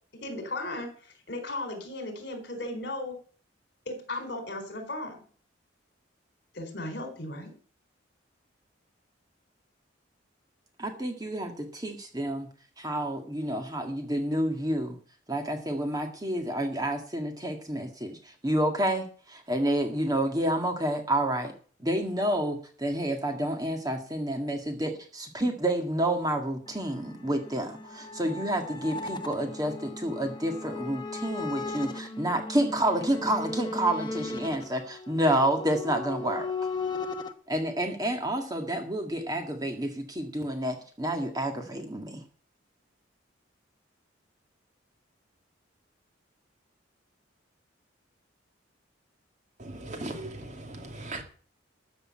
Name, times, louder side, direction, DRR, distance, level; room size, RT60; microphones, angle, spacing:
voice 1, 0.1-3.2 3.9-5.2 6.5-7.5, left 2 dB, 55° left, 6 dB, 4.3 m, -36 dB
voice 2, 10.8-12.5 12.8-15.0 15.3-21.5 21.8-36.5 37.5-42.2, right 1 dB, 20° right, 4 dB, 1.8 m, -29 dB
sound 1, 26.7-37.3, left 3 dB, 20° left, 1.2 m, -37 dB
voice 3, 49.6-51.2, right 2 dB, 35° right, 5 dB, 2.1 m, -38 dB
13.5 x 6.5 x 8.8 m, 0.42 s
head